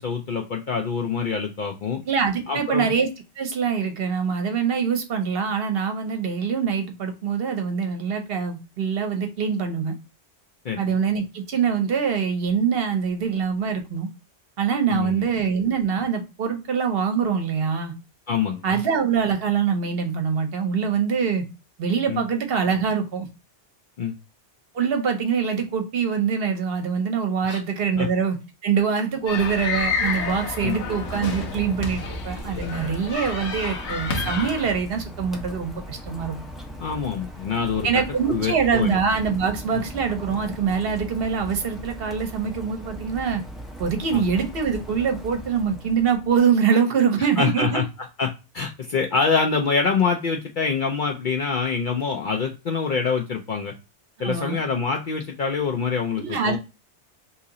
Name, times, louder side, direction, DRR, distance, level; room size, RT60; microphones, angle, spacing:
voice 1, 0.0-2.0 2.5-2.9 10.6-10.8 14.9-15.2 18.3-18.8 22.1-22.2 24.0-24.1 27.4-27.6 28.0-28.1 30.6-30.8 36.8-37.9 38.3-39.0 44.1-44.3 47.4-47.8 48.2-53.7 54.2-56.6, left 5 dB, 55° left, 0.6 m, -25 dB
voice 2, 2.0-3.1 3.4-10.0 10.8-14.1 14.6-17.9 18.6-21.4 21.8-23.3 24.7-28.4 28.6-36.4 37.8-43.4 43.8-47.8 54.2-54.6 56.2-56.6, right 6 dB, 60° right, 1.0 m, -24 dB
Rain, 29.2-46.5, equal, ahead, 0.4 m, -38 dB
sound 1, 29.3-34.8, left 4 dB, 75° left, 1.0 m, -30 dB
2.9 x 2.8 x 3.6 m
omnidirectional pair, 1.2 m